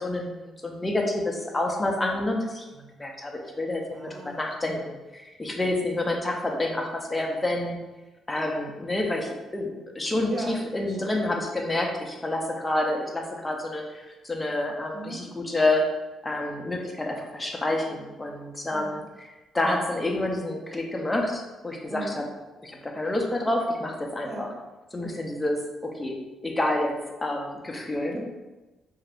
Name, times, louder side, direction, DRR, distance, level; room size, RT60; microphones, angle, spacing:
voice 1, 0.0-3.8 4.2-7.8 8.3-15.9 16.2-22.2 22.6-24.5 24.9-26.2 26.4-28.1, left 1 dB, 15° left, 1 dB, 0.5 m, -28 dB
voice 2, 3.9-4.6 10.3-10.6 10.9-11.3 14.9-15.2 18.7-19.0 21.9-22.2 24.2-24.5 28.1-28.2, right 2 dB, 50° right, 0 dB, 0.7 m, -38 dB
2.7 x 2.4 x 3.3 m, 1.1 s
cardioid pair, 90°, 0 cm